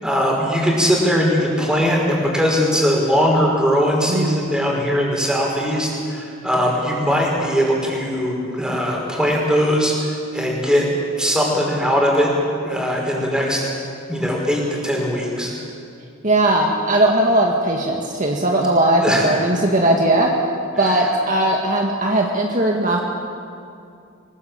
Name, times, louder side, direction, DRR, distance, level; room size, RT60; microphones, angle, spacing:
voice 1, 0.0-10.9 11.2-12.3 12.6-13.6 14.1-15.5 19.0-19.3 20.8-21.0, equal, 5° right, -2 dB, 5.5 m, -20 dB
voice 2, 4.1-4.5 16.2-20.3 20.8-23.0, right 1 dB, 40° right, 0 dB, 2.0 m, -18 dB
24.5 x 20.5 x 8.9 m, 2.5 s
head